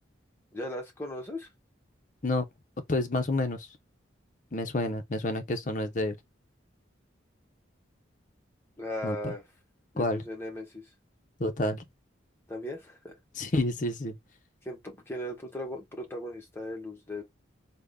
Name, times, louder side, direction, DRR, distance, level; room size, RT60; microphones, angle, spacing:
voice 1, 0.5-1.5 8.8-9.4 9.9-10.9 12.5-13.2 14.6-17.2, left 1 dB, 10° left, 0.9 m, -38 dB
voice 2, 2.9-3.7 4.5-6.2 9.0-9.3 10.0-10.2 11.4-11.8 13.4-14.2, left 2 dB, 40° left, 0.6 m, -29 dB
3.5 x 2.1 x 3.6 m
head